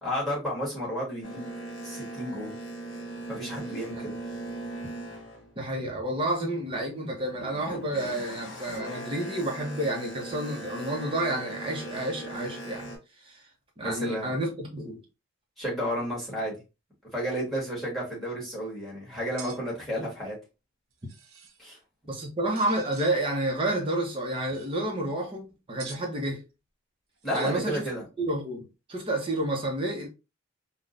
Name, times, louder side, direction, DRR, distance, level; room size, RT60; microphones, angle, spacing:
voice 1, 0.0-1.5 1.8-2.5 3.3-4.1 13.8-14.3 15.6-16.6 17.1-20.3 21.6-21.8 27.2-28.1, equal, ahead, 1.6 m, -32 dB
Boat Water vehicle, 1.2-6.2 6.7-13.0, right 1 dB, 60° left, 1.3 m, -39 dB
voice 2, 5.6-12.9 13.2-13.4 13.8-15.0 22.1-26.4 27.3-27.9 28.2-30.1, right 1 dB, 25° right, 0.8 m, -30 dB
sound 1, 19.4-19.6 20.9-21.6 22.6-23.1 24.2-24.8 25.8-26.1 27.2-27.7, right 6 dB, 85° right, 0.7 m, -47 dB
3.6 x 2.3 x 2.5 m
head